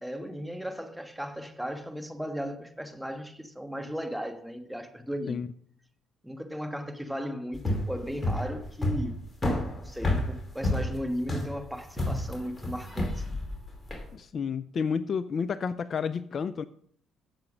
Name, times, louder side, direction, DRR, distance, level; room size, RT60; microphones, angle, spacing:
voice 1, 0.0-5.4 6.2-9.1 9.7-13.2, equal, 5° right, 1.4 m, -36 dB
sound 1, 7.5-14.1, left 1 dB, 20° left, 2.6 m, -30 dB
voice 2, 14.1-16.6, left 6 dB, 50° left, 0.4 m, -31 dB
7.7 x 6.9 x 6.2 m
supercardioid pair, 70°, 0 cm